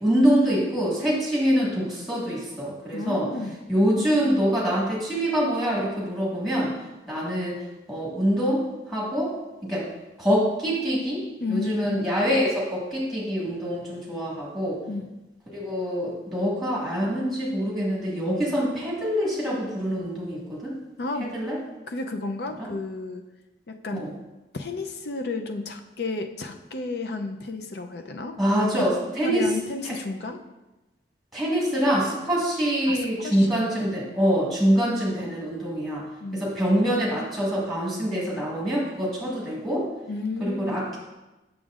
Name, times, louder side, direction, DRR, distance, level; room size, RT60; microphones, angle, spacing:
voice 1, 0.0-3.3 3.7-6.7 7.1-7.6 7.9-9.3 9.6-9.8 10.2-11.2 11.5-14.8 15.5-20.7 21.3-21.6 22.6-22.7 23.9-24.1 28.4-29.5 29.8-29.9 31.3-36.0 36.3-39.9 40.4-41.0, equal, ahead, -6 dB, 1.5 m, -25 dB
voice 2, 2.9-3.6 11.4-12.0 14.9-15.1 21.0-21.4 21.9-23.2 23.7-24.1 24.5-28.4 29.1-30.4 32.9-33.5 36.2-36.4 40.1-40.8, left 3 dB, 65° left, 5 dB, 0.5 m, -32 dB
7.0 x 6.1 x 2.4 m, 1.0 s
head